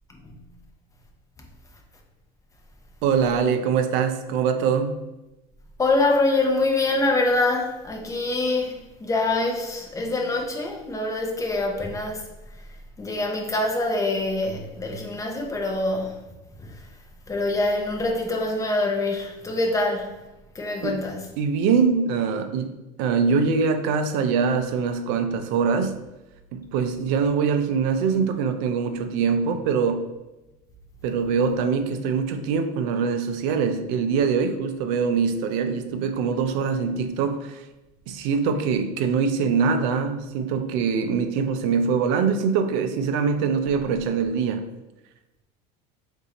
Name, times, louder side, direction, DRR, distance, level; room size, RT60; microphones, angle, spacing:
voice 1, 3.0-5.0 20.8-21.0 21.4-26.0 26.5-30.1 31.0-37.7 38.1-44.7, right 5 dB, 70° right, 0.5 m, -23 dB
voice 2, 5.8-12.3 13.0-16.2 16.6-16.7 17.3-20.1 20.5-21.2, left 2 dB, 15° left, 0.8 m, -25 dB
3.8 x 2.7 x 4.1 m
supercardioid pair, 115°, 20 cm